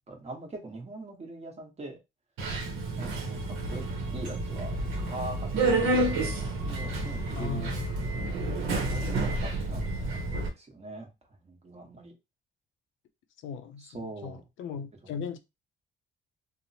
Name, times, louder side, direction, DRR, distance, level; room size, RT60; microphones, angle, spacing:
voice 1, 0.1-2.0 3.0-3.8 4.1-7.7 8.8-10.0 10.5-11.1 11.4-12.1 13.8-14.4 15.0-15.1, right 2 dB, 30° right, 1.0 m, -42 dB
Subway metro underground, 2.4-10.5, right 2 dB, 90° right, 0.7 m, -30 dB
voice 2, 7.4-7.9 13.4-15.4, left 6 dB, 75° left, 0.5 m, -38 dB
3.0 x 2.0 x 2.7 m
cardioid pair, 90°, 20 cm